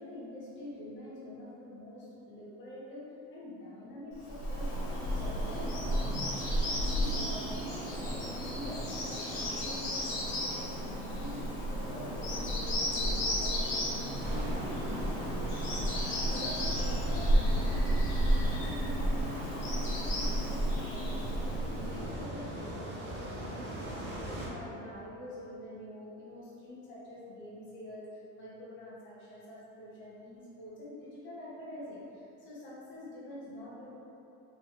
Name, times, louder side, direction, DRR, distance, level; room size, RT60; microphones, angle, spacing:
voice 1, 0.0-15.8 16.1-33.9, left 1 dB, 35° left, -8 dB, 0.8 m, -46 dB
Bird vocalization bird call bird song, 4.2-22.2, equal, 70° left, 1.2 m, -32 dB
sound 1, 14.2-24.5, right 1 dB, 30° right, 0.5 m, -41 dB
3.1 x 3.0 x 2.8 m, 2.8 s
cardioid pair, 150°, 34 cm